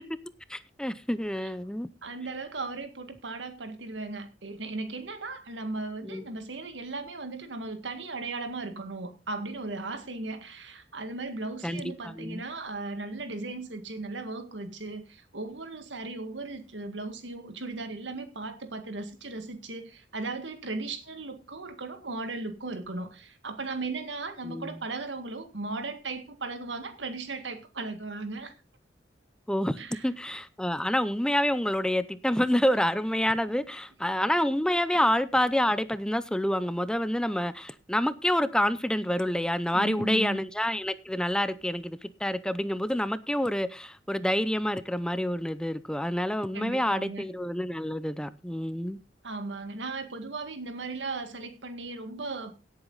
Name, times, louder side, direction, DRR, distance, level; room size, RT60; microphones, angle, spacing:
voice 1, 0.5-1.9 6.0-6.2 11.6-12.4 24.4-24.8 29.5-49.0, equal, 5° left, 0.6 m, -28 dB
voice 2, 2.0-28.5 29.8-30.1 34.9-35.0 39.7-40.4 46.5-47.3 49.2-52.5, right 3 dB, 85° right, 1.9 m, -37 dB
17.0 x 8.1 x 4.0 m
head